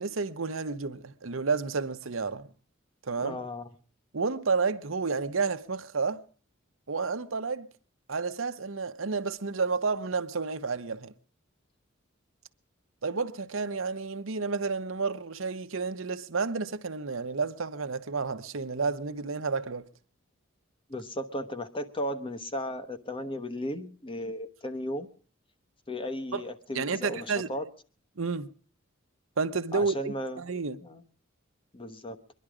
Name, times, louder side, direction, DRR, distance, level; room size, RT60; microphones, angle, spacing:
voice 1, 0.0-2.5 3.0-3.4 4.1-6.2 6.9-7.7 8.1-11.1 13.0-19.9 26.3-26.4 26.7-27.5 28.2-28.5 29.4-30.8, right 4 dB, 80° right, 0.9 m, -31 dB
voice 2, 3.2-3.7 20.9-25.1 25.9-27.6 29.7-30.4 30.8-31.0 31.7-32.2, left 1 dB, 25° left, 1.1 m, -35 dB
23.5 x 11.0 x 4.9 m
head